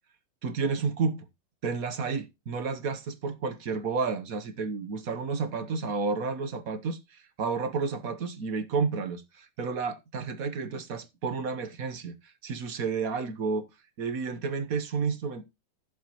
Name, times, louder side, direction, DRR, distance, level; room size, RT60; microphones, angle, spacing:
voice 1, 0.4-1.3 1.6-13.7 14.0-15.4, right 4 dB, 50° right, 1.2 m, -31 dB
14.5 x 7.4 x 2.9 m
omnidirectional pair, 2.3 m